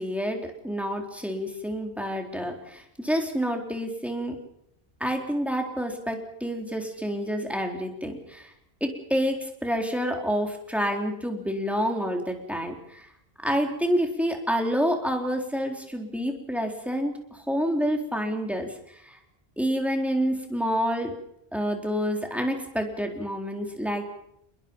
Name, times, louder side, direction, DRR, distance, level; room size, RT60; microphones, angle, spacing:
voice 1, 0.0-4.4 5.0-8.5 8.8-13.1 13.4-18.7 19.0-19.2 19.6-21.1 21.5-24.0, equal, ahead, 2 dB, 3.9 m, -28 dB
29.0 x 21.0 x 5.5 m, 0.75 s
omnidirectional pair, 1.1 m